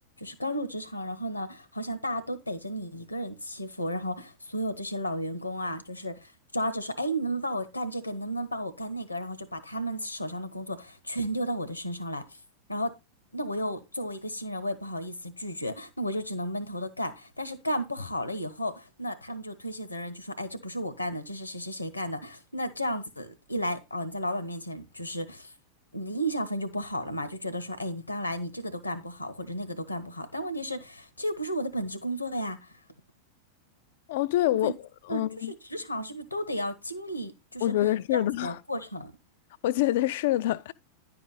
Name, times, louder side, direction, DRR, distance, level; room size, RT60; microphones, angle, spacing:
voice 1, 0.2-12.4 12.7-12.9 13.3-25.5 25.9-32.7 34.6-34.7 35.1-35.2 35.7-37.7 38.1-39.1, equal, 85° left, 1.0 m, -33 dB
voice 2, 34.1-34.7 35.1-35.5 37.6-38.6 39.6-40.7, left 14 dB, 55° left, 0.3 m, -26 dB
10.5 x 5.0 x 4.0 m
figure-of-eight pair, 90°, 0 cm